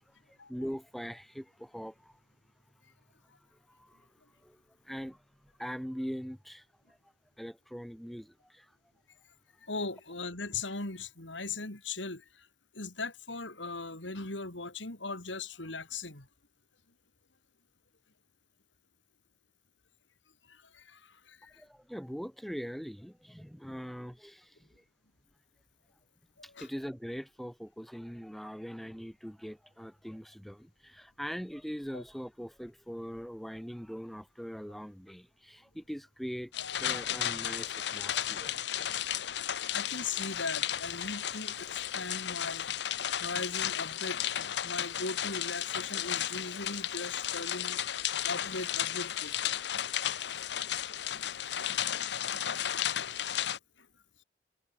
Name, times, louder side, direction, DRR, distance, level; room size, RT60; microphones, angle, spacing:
voice 1, 0.3-2.1 3.7-4.1 4.4-4.6 4.8-5.2 5.6-6.6 7.4-8.7 21.6-24.7 26.4-38.6, equal, ahead, 4.2 m, -42 dB
voice 2, 9.6-12.5 12.7-16.3 20.5-21.6 26.4-26.7 31.9-32.0 36.6-36.7 39.7-42.8 43.2-44.2 44.6-47.8 48.2-49.3 50.2-50.4 51.1-51.5 52.0-52.1 52.5-52.6 53.8-53.9, left 3 dB, 80° left, 4.6 m, -39 dB
sound 1, 36.5-53.6, left 10 dB, 65° left, 0.7 m, -34 dB
head